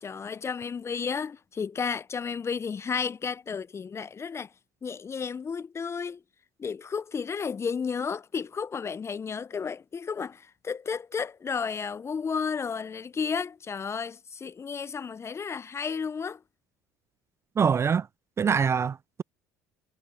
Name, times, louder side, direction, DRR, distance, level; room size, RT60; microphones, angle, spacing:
voice 1, 0.0-4.5 4.8-6.2 6.6-16.4, left 6 dB, 30° left, 0.7 m, -32 dB
voice 2, 17.6-18.1 18.4-19.2, right 6 dB, 30° right, 0.4 m, -24 dB
hypercardioid pair, 65°, 9 cm